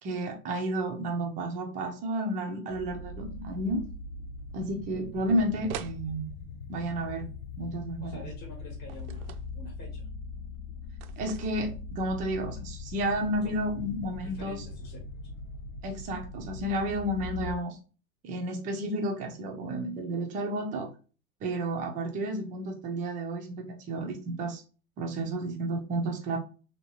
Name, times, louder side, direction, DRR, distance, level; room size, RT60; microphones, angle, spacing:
voice 1, 0.0-3.8 4.5-6.3 6.7-7.3 7.6-8.3 11.2-14.6 15.8-17.8 18.2-20.9 21.4-24.6 25.0-26.4, right 1 dB, 20° right, 4 dB, 0.4 m, -31 dB
sound 1, 2.7-17.6, left 3 dB, 85° left, 1.2 m, -41 dB
sound 2, 5.7-6.0 8.9-9.5 11.0-11.8, right 9 dB, 80° right, 0.5 m, -41 dB
voice 2, 8.0-10.1 14.2-15.0, left 3 dB, 25° left, 0 dB, 1.0 m, -48 dB
2.8 x 2.8 x 2.8 m, 0.35 s
hypercardioid pair, 140°, 42 cm